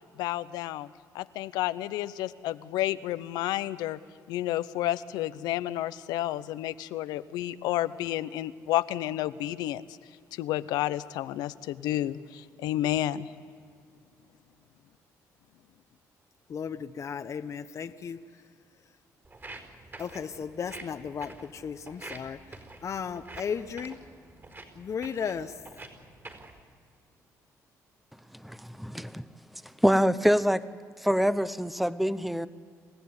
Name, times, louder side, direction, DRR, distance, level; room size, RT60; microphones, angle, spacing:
voice 1, 0.2-0.9 1.1-4.0 4.3-9.8 10.3-13.3, left 14 dB, 90° left, 15 dB, 0.8 m, -31 dB
voice 2, 16.5-18.2 20.0-22.4 22.8-24.0 24.8-25.5, left 7 dB, 50° left, 9 dB, 0.9 m, -35 dB
Walk footsteps, 19.2-26.6, right 2 dB, 35° right, 4.6 m, -47 dB
voice 3, 28.4-29.2 29.8-30.6 31.0-32.5, equal, ahead, 14 dB, 0.9 m, -25 dB
27.5 x 15.5 x 9.7 m, 2.2 s
cardioid pair, 80°, 7 cm